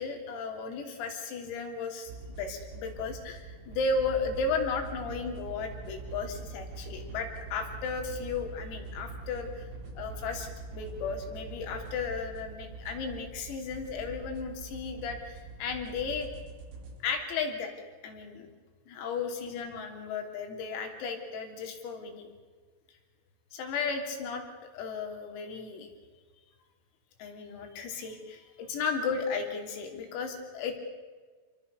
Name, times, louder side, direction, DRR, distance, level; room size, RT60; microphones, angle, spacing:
voice 1, 0.0-9.7 10.0-16.3 17.0-17.7 18.0-18.5 18.9-22.3 23.5-24.4 24.7-25.9 27.2-30.8, left 4 dB, 90° left, 4 dB, 5.8 m, -34 dB
sound 1, 2.1-17.0, right 3 dB, 85° right, 7.1 m, -43 dB
28.0 x 21.0 x 6.7 m, 1.5 s
omnidirectional pair, 6.0 m